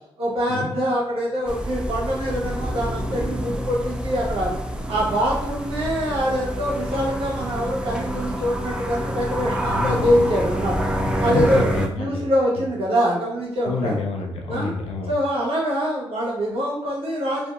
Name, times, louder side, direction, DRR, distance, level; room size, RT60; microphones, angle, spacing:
voice 1, 0.2-4.5 4.9-10.9 11.2-11.7 12.0-14.0 14.5-14.7 15.1-17.5, equal, 70° right, -4 dB, 1.1 m, -24 dB
sound 1, 1.5-11.9, equal, 10° right, 0.4 m, -27 dB
voice 2, 9.7-10.2 11.0-12.3 13.7-15.1, left 3 dB, 80° left, 1 dB, 0.5 m, -28 dB
2.8 x 2.5 x 2.3 m, 0.83 s
supercardioid pair, 55°, 10 cm